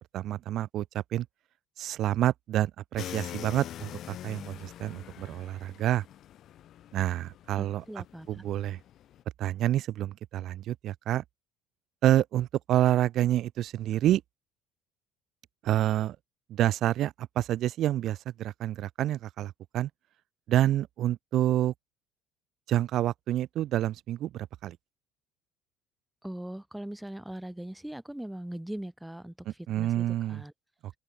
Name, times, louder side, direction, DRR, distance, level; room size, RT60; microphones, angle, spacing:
voice 1, 0.1-1.3 1.8-6.0 6.9-7.8 8.3-8.8 9.4-11.2 12.0-14.2 15.6-16.2 16.5-19.9 20.5-21.7 22.7-24.8 29.7-30.4, right 13 dB, 55° right, 1.0 m, -28 dB
sound 1, 3.0-9.2, left 12 dB, 55° left, 1.8 m, -44 dB
voice 2, 7.6-8.4 26.2-30.5, right 1 dB, 5° right, 3.3 m, -40 dB
open air
supercardioid pair, 100°, 0 cm